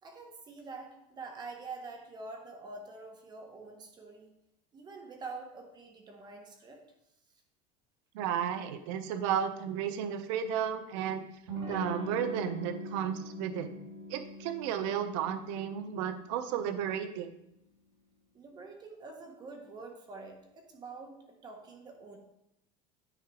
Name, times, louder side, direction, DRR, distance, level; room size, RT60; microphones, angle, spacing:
voice 1, 0.0-4.4 4.7-6.8 18.3-22.2, right 3 dB, 25° right, 3 dB, 1.3 m, -46 dB
voice 2, 8.1-11.2 11.7-13.7 14.1-17.3, right 9 dB, 70° right, 9 dB, 0.8 m, -33 dB
Electric guitar / Strum, 11.5-16.8, equal, 90° right, 3.0 m, -42 dB
10.0 x 3.8 x 4.9 m, 0.81 s
cardioid pair, 145°, 16 cm